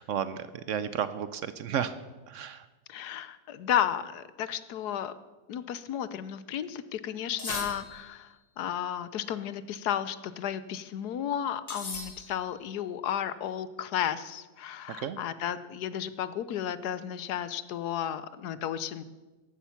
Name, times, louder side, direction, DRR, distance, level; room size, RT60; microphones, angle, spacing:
voice 1, 0.0-1.9 2.3-2.7 15.0-15.2, right 8 dB, 70° right, 13 dB, 0.7 m, -32 dB
voice 2, 2.9-5.2 5.5-8.3 8.6-19.0, left 10 dB, 70° left, 14 dB, 1.2 m, -33 dB
sound 1, 7.4-8.3 11.7-12.6, left 3 dB, 85° left, 3.2 m, -39 dB
14.5 x 11.5 x 5.8 m, 1.2 s
omnidirectional pair, 2.0 m